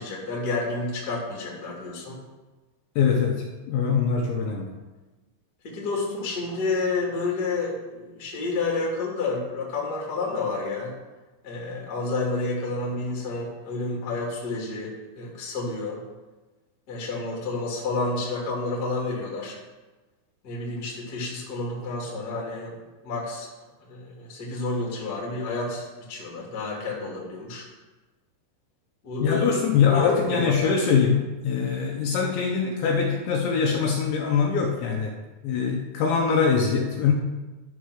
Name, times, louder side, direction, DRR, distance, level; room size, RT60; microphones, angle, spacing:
voice 1, 0.0-2.2 5.6-10.9 11.4-16.0 16.9-19.6 20.4-22.8 23.0-23.5 23.8-27.6 29.0-29.4 29.9-30.5, left 3 dB, 35° left, -3 dB, 1.7 m, -30 dB
voice 2, 3.0-4.7 29.2-35.1 35.4-37.1, left 6 dB, 75° left, 0 dB, 2.9 m, -23 dB
12.5 x 4.6 x 6.3 m, 1.2 s
omnidirectional pair, 5.8 m